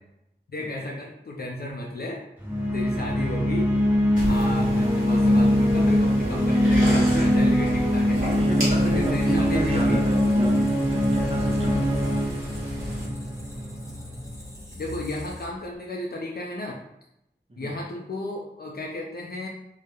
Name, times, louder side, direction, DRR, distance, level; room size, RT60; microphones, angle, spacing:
voice 1, 0.5-2.2 2.7-3.7 4.2-8.2 8.8-10.0 14.8-16.8 17.6-19.5, left 1 dB, 55° left, -1 dB, 0.4 m, -33 dB
sound 1, 2.4-13.9, equal, 10° right, 0.9 m, -22 dB
sound 2, 4.2-13.0, equal, 50° right, 1.1 m, -34 dB
Squeak, 7.9-15.8, left 1 dB, 15° left, 0.6 m, -40 dB
voice 2, 8.3-10.6 10.9-12.1 17.5-17.7, equal, 30° right, -2 dB, 0.6 m, -30 dB
2.2 x 2.0 x 2.9 m, 0.81 s
wide cardioid pair, 40°, 19 cm